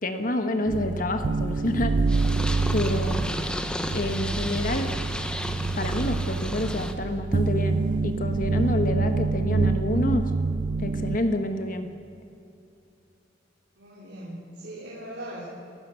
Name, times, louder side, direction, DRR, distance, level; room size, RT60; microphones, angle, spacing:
voice 1, 0.0-2.0 2.7-3.3 3.9-4.9 5.8-10.3 10.8-11.9, left 1 dB, 45° left, 7 dB, 1.4 m, -28 dB
sound 1, 0.7-11.2, right 3 dB, 45° right, 0.4 m, -26 dB
Purr, 2.1-6.9, left 1 dB, 5° left, 1.1 m, -33 dB
voice 2, 4.1-4.4 13.8-15.4, right 1 dB, 80° right, -7 dB, 4.6 m, -40 dB
28.0 x 16.0 x 6.4 m, 2.7 s
head